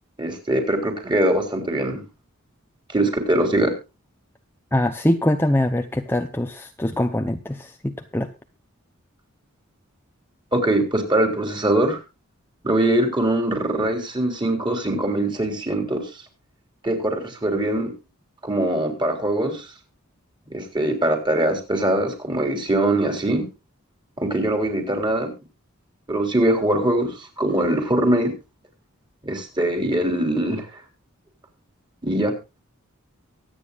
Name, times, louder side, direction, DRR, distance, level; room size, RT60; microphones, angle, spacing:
voice 1, 0.2-2.0 2.9-3.7 10.5-12.0 12.6-16.1 16.8-17.9 18.4-19.7 20.5-23.5 24.2-25.3 26.1-28.3 29.2-30.7 32.0-32.3, right 1 dB, 20° right, 5 dB, 3.6 m, -22 dB
voice 2, 4.7-8.3, left 1 dB, 10° left, 6 dB, 0.8 m, -23 dB
24.0 x 9.2 x 2.4 m, 0.28 s
head